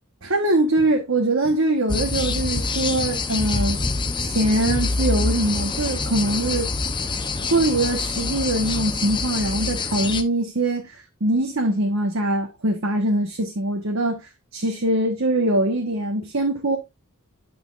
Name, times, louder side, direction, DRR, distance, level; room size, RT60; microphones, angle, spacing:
voice 1, 0.2-3.8 4.2-6.7 7.0-16.8, right 1 dB, 70° right, 1.2 m, -23 dB
sound 1, 1.9-10.2, left 3 dB, 20° left, 0.7 m, -25 dB
9.6 x 6.1 x 2.4 m
head